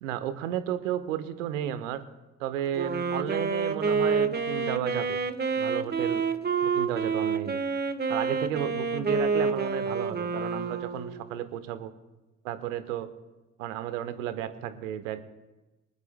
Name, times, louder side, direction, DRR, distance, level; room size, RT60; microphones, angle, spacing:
voice 1, 0.0-2.0 2.4-5.2 5.6-6.2 6.6-7.6 8.1-11.9 12.4-13.1 13.6-15.2, right 11 dB, 75° right, 11 dB, 1.1 m, -33 dB
Wind instrument woodwind instrument, 2.7-11.4, right 5 dB, 25° right, 1.2 m, -28 dB
25.0 x 11.0 x 2.2 m, 1.1 s
figure-of-eight pair, 45°, 40 cm